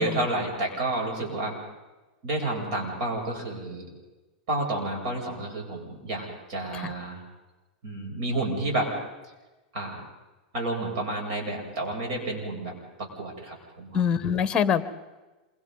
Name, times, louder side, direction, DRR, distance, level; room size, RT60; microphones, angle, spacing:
voice 1, 0.0-1.5 2.2-3.8 4.5-7.2 7.8-8.9 9.7-10.0 10.5-14.0, right 2 dB, 60° right, 0 dB, 7.8 m, -30 dB
voice 2, 13.9-14.8, left 7 dB, 20° left, 12 dB, 1.3 m, -24 dB
27.5 x 25.0 x 4.1 m, 1.1 s
supercardioid pair, 140°, 4 cm